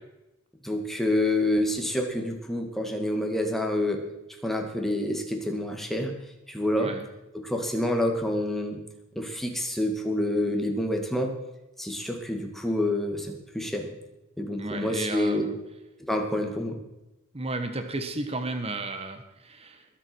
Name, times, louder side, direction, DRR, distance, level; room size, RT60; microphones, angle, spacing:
voice 1, 0.6-4.0 4.4-6.1 6.5-6.9 7.4-8.8 9.2-11.3 11.8-13.9 14.4-15.4 16.1-16.8, left 1 dB, ahead, 2 dB, 2.3 m, -27 dB
voice 2, 14.6-15.6 17.3-19.8, right 2 dB, 30° right, 7 dB, 1.4 m, -33 dB
21.0 x 8.3 x 6.3 m, 0.94 s
head